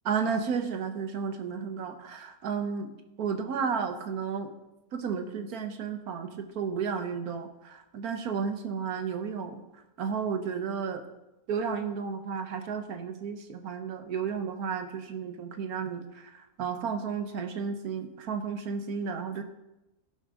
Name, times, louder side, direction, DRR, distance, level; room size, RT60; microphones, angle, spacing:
voice 1, 0.0-2.9 3.2-4.5 4.9-9.6 10.0-11.0 11.5-19.4, right 6 dB, 90° right, 6 dB, 1.5 m, -33 dB
14.5 x 11.5 x 3.8 m, 0.95 s
omnidirectional pair, 1.5 m